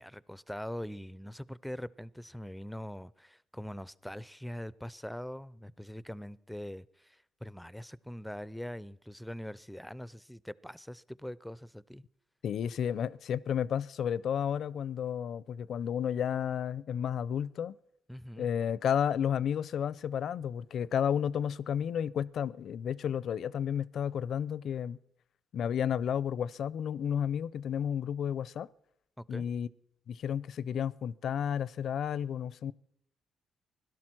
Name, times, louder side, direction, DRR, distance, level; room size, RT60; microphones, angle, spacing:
voice 1, 0.0-12.0 18.1-18.5 29.2-29.5, equal, ahead, 0.5 m, -43 dB
voice 2, 12.4-17.8 18.4-25.0 25.5-28.7 29.3-29.7 30.1-32.7, left 8 dB, 65° left, 0.5 m, -32 dB
17.0 x 12.0 x 6.1 m
cardioid pair, 90°, 0 cm